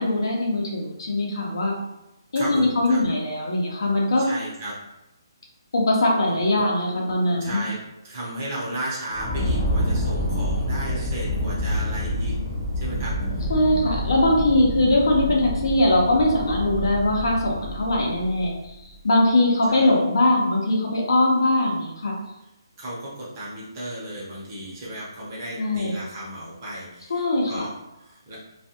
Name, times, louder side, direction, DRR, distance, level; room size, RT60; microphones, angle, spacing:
voice 1, 0.0-1.7 2.3-4.2 5.7-7.6 13.5-18.7 19.0-22.1 25.6-25.9 27.1-27.6, left 1 dB, 65° left, -1 dB, 0.8 m, -21 dB
voice 2, 2.3-3.0 4.2-4.7 6.3-6.4 7.4-7.8 8.0-12.3 12.8-13.5 19.7-19.9 22.8-28.4, right 1 dB, 25° right, -6 dB, 0.8 m, -34 dB
sound 1, 9.1-18.7, equal, 15° left, 0.6 m, -27 dB
2.4 x 2.2 x 2.8 m, 0.93 s
hypercardioid pair, 170°, 2 cm